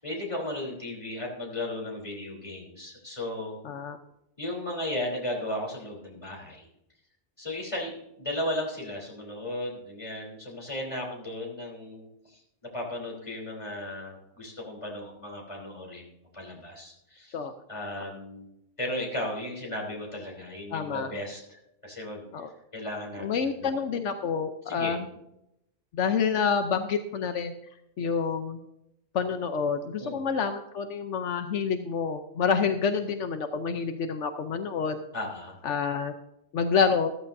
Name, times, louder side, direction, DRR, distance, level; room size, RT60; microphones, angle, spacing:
voice 1, 0.0-3.6 4.4-6.7 7.4-12.4 12.7-17.4 17.7-18.5 18.8-21.6 21.8-22.2 22.7-23.7 24.7-25.0 30.0-30.3 35.1-35.6, left 1 dB, 25° left, -2 dB, 3.6 m, -35 dB
voice 2, 3.6-4.0 17.3-17.5 20.7-21.1 22.3-22.5 23.2-25.0 25.9-27.5 28.0-28.6 29.1-35.0 35.6-36.1 36.5-37.1, left 6 dB, 80° left, 7 dB, 1.1 m, -28 dB
14.5 x 14.0 x 2.7 m, 0.81 s
omnidirectional pair, 1.2 m